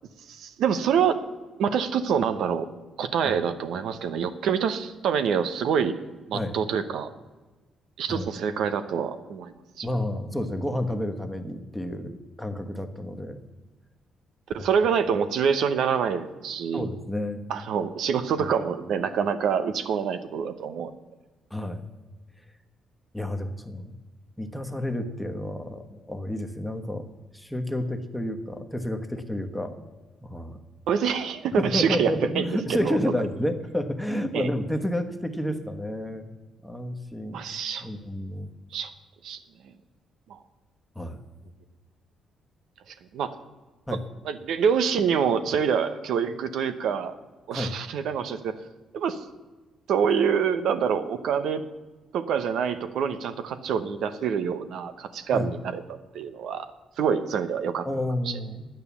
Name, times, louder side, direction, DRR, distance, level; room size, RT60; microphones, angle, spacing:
voice 1, 0.3-1.2 1.6-2.7 3.0-6.0 6.3-7.1 8.0-9.9 14.5-16.9 17.5-20.9 30.9-33.0 34.3-34.5 37.3-37.9 38.7-38.9 39.2-39.4 40.3-40.4 43.1-43.4 44.2-47.1 47.5-48.6 48.9-49.2 49.9-51.6 52.1-56.7 57.0-57.9 58.3-58.4, right 7 dB, 75° right, 10 dB, 0.8 m, -26 dB
voice 2, 9.8-13.4 16.7-17.4 18.4-18.5 21.5-21.8 23.1-23.9 24.4-27.1 27.3-29.9 30.2-30.6 31.5-36.3 36.6-37.4 37.8-38.5 40.9-41.2 43.9-44.0 47.5-47.7 55.3-55.5 57.8-58.7, left 1 dB, ahead, 6 dB, 1.2 m, -30 dB
10.0 x 9.2 x 7.0 m, 1.2 s
cardioid pair, 90°, 0 cm